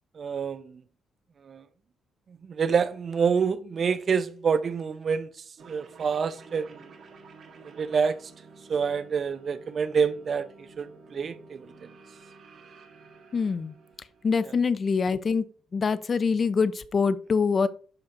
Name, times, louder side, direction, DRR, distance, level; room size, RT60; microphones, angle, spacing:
voice 1, 0.2-0.8 1.5-1.6 2.5-5.3 5.6-6.8 7.8-8.2 8.7-10.5 10.8-11.7, right 6 dB, 50° right, 0.6 m, -27 dB
sound 1, 5.6-14.5, right 4 dB, 65° right, 1.6 m, -51 dB
voice 2, 13.3-13.7 14.2-15.5 15.7-17.7, left 5 dB, 40° left, 0.6 m, -24 dB
12.0 x 4.2 x 2.6 m
cardioid pair, 90°, 0 cm